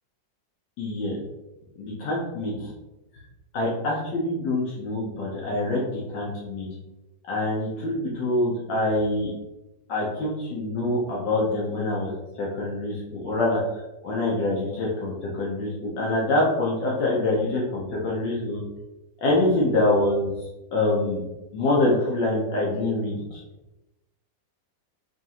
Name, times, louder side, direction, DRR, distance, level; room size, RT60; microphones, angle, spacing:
voice 1, 0.8-1.2 1.8-2.7 3.5-6.7 7.3-9.3 9.9-12.1 12.4-13.6 14.0-18.6 19.2-20.3 20.7-21.2 21.5-23.4, left 2 dB, 75° left, -4 dB, 1.4 m, -25 dB
5.2 x 2.4 x 2.9 m, 1.0 s
omnidirectional pair, 2.0 m